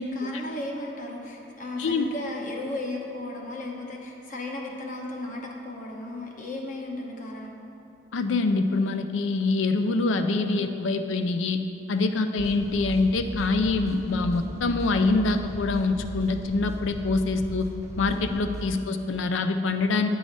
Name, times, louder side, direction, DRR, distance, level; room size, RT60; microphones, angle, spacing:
voice 1, 0.0-7.6 18.1-18.3, left 2 dB, 45° left, 0 dB, 0.9 m, -35 dB
voice 2, 8.1-11.6 11.9-17.7 18.0-20.1, left 3 dB, 85° left, 8 dB, 0.4 m, -25 dB
sound 1, 12.4-18.7, right 1 dB, 15° right, 0.6 m, -37 dB
8.9 x 4.8 x 4.0 m, 2.7 s
head